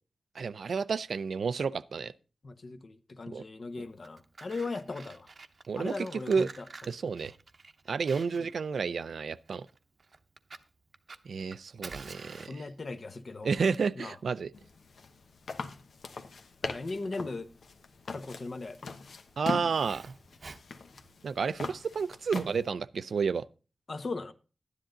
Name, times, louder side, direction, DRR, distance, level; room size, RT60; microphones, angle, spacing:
voice 1, 0.4-2.1 3.3-3.4 5.7-5.9 6.3-6.5 6.9-7.3 7.9-9.7 11.3-12.6 13.4-14.5 19.4-20.1 21.2-23.4, right 5 dB, 80° right, 0.4 m, -31 dB
voice 2, 2.4-5.3 5.8-6.7 8.3-8.5 12.4-13.5 14.0-14.2 16.6-17.5 18.1-19.0 23.9-24.3, left 3 dB, 50° left, 0.9 m, -38 dB
Fire, 3.8-21.6, right 4 dB, 50° right, 0.8 m, -51 dB
sound 1, 14.5-22.7, left 4 dB, 85° left, 1.0 m, -42 dB
11.5 x 10.0 x 3.8 m
wide cardioid pair, 120°, 0 cm